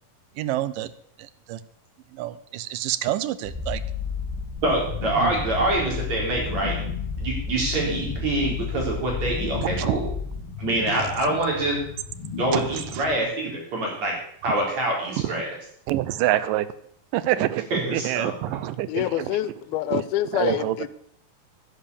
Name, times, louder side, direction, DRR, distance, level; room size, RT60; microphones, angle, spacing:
voice 1, 0.4-0.9 1.5-1.6 2.2-3.8 5.2-5.3 9.8-9.9 15.9-16.7 17.1-19.3 19.9-20.0 20.3-20.8, right 14 dB, 80° right, 2.0 m, -26 dB
Purr, 3.4-10.4, left 5 dB, 10° left, 1.8 m, -32 dB
sound 1, 4.6-13.1, left 6 dB, 55° left, 1.4 m, -37 dB
voice 2, 4.6-6.8 7.2-10.1 10.6-11.8 12.4-14.2 14.4-15.6 17.7-18.6, right 2 dB, 50° right, 5.1 m, -25 dB
voice 3, 18.9-20.9, left 14 dB, 90° left, 2.5 m, -26 dB
10.5 x 10.0 x 6.9 m
omnidirectional pair, 4.3 m